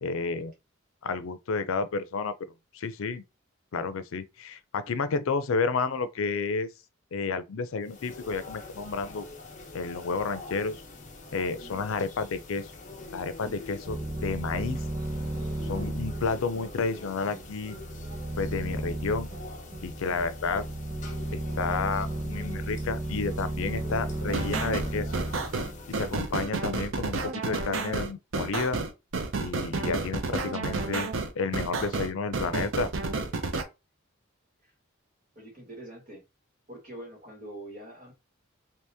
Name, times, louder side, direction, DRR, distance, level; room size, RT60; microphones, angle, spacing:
voice 1, 0.0-0.5 1.0-2.3 2.7-3.2 3.7-6.7 7.1-9.3 9.7-10.8 11.3-12.7 13.1-14.8 15.6-17.8 18.4-19.3 19.8-20.6 21.3-25.1 25.9-28.8 29.4-31.1 31.4-32.9, left 4 dB, 90° left, 0.5 m, -31 dB
sound 1, 7.8-26.4, left 3 dB, 40° left, 0.8 m, -45 dB
sound 2, 13.9-26.3, right 1 dB, 25° right, 1.0 m, -34 dB
sound 3, 24.3-33.6, right 3 dB, 75° right, 0.6 m, -31 dB
voice 2, 35.4-36.2 36.7-38.1, right 1 dB, 45° right, 1.8 m, -44 dB
2.9 x 2.9 x 3.4 m
head